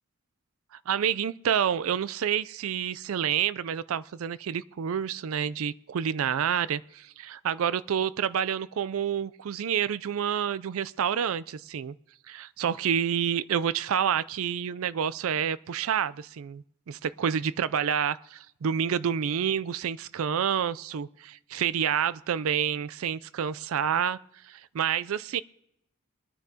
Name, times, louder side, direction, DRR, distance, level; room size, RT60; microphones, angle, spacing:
voice 1, 0.9-11.9 12.3-24.2 24.4-25.4, right 8 dB, 75° right, 0.4 m, -28 dB
23.5 x 9.7 x 2.8 m
head